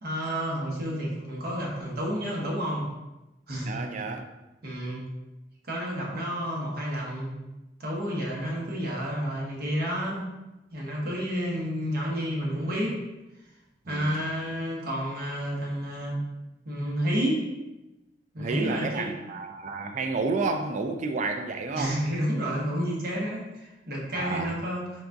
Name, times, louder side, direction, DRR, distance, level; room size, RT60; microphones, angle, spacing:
voice 1, 0.0-2.9 3.5-3.7 4.6-5.0 5.7-7.3 7.8-10.3 10.7-13.0 13.8-16.2 16.6-17.5 18.3-19.1 21.8-25.0, equal, 60° right, -3 dB, 1.1 m, -30 dB
voice 2, 3.7-4.3 13.9-14.2 18.4-22.0 24.1-24.6, right 3 dB, 45° right, 5 dB, 0.4 m, -30 dB
4.0 x 2.5 x 3.4 m, 1.0 s
head